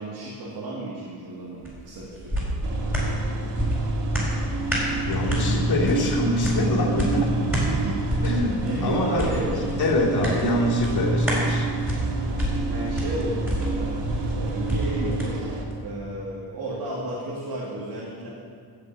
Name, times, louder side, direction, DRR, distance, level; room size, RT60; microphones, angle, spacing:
voice 1, 0.0-2.4 7.7-8.0 8.6-9.6 12.7-15.5 15.8-18.3, right 2 dB, 60° right, -5 dB, 2.4 m, -32 dB
sound 1, 1.6-15.3 15.7-15.8, equal, 5° right, 4.2 m, -29 dB
sound 2, 2.6-15.6, right 2 dB, 90° right, 2.2 m, -29 dB
voice 2, 5.0-7.3 8.2-9.3 9.8-11.7, left 1 dB, 65° left, -5 dB, 3.2 m, -24 dB
14.5 x 6.1 x 8.7 m, 2.1 s
wide cardioid pair, 150°, 41 cm